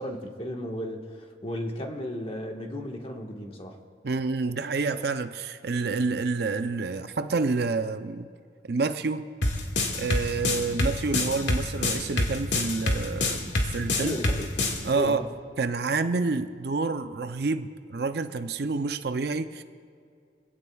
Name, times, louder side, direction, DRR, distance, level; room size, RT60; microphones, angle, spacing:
voice 1, 0.0-3.8 14.0-14.5 14.9-15.3, equal, 30° left, 1.5 m, -34 dB
voice 2, 4.0-8.3 8.7-9.2 10.0-13.4 13.7-14.2 14.8-15.2 15.6-19.6, right 4 dB, 60° right, 0.5 m, -28 dB
sound 1, 9.4-14.8, left 2 dB, 90° left, 1.9 m, -25 dB
24.5 x 16.5 x 2.4 m
head